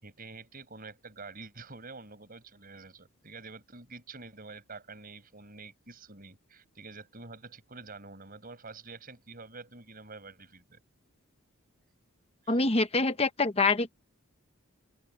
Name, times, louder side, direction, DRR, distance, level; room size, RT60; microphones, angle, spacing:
voice 1, 0.0-10.8 12.4-12.7, right 3 dB, 40° right, 6.5 m, -47 dB
voice 2, 12.5-13.9, left 3 dB, 30° left, 1.1 m, -25 dB
open air
head